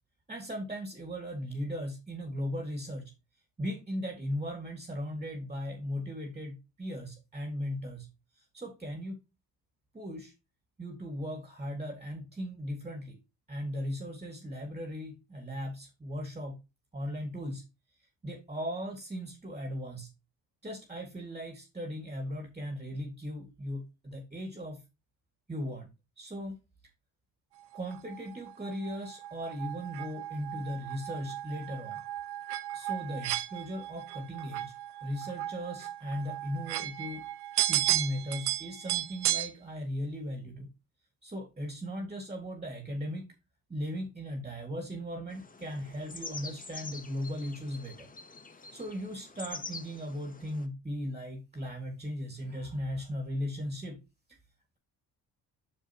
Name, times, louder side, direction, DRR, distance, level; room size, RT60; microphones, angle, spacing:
voice 1, 0.3-3.1 3.6-8.1 8.4-9.2 9.9-10.3 10.8-13.2 13.5-16.6 16.9-17.7 18.2-20.1 20.6-24.8 25.5-26.6 27.7-32.0 32.7-34.7 35.0-37.2 37.7-40.7 41.2-43.3 43.7-48.1 48.7-54.0, equal, 15° right, 4 dB, 2.1 m, -37 dB
sound 1, 27.7-39.5, right 15 dB, 85° right, 0.8 m, -35 dB
sound 2, 45.3-50.6, left 3 dB, 20° left, 1.1 m, -46 dB
7.5 x 6.7 x 2.9 m, 0.25 s
cardioid pair, 90°, 39 cm